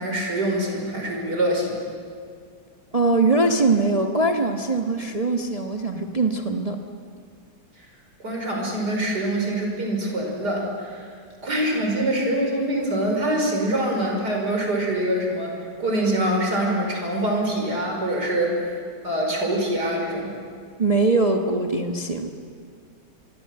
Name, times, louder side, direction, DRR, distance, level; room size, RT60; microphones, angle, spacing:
voice 1, 0.0-1.8 8.2-11.1 11.4-18.8 19.0-20.3, right 1 dB, 70° right, 1 dB, 5.7 m, -24 dB
voice 2, 2.9-6.8 20.8-22.3, right 3 dB, 25° right, 3 dB, 1.2 m, -22 dB
25.5 x 24.0 x 7.8 m, 2.1 s
omnidirectional pair, 1.8 m